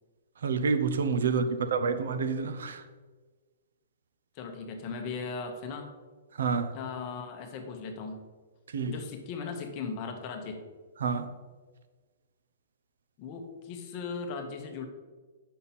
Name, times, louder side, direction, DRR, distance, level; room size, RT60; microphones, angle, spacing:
voice 1, 0.4-2.8 6.3-6.7 8.7-9.0 11.0-11.3, right 5 dB, 90° right, 0.7 m, -28 dB
voice 2, 4.3-5.9 6.7-8.2 8.9-10.6 13.2-14.9, left 5 dB, 25° left, 0.8 m, -38 dB
7.0 x 5.6 x 4.2 m
hypercardioid pair, 175°, 0 cm